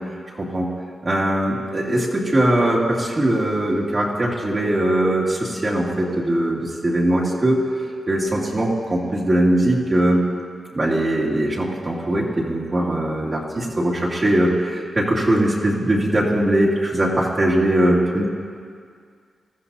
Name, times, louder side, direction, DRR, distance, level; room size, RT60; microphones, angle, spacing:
voice 1, 0.4-0.7 1.0-7.7 8.1-10.2 10.7-18.2, right 1 dB, 35° right, -5 dB, 2.6 m, -20 dB
21.5 x 14.0 x 2.8 m, 2.1 s
cardioid pair, 75°, 0 cm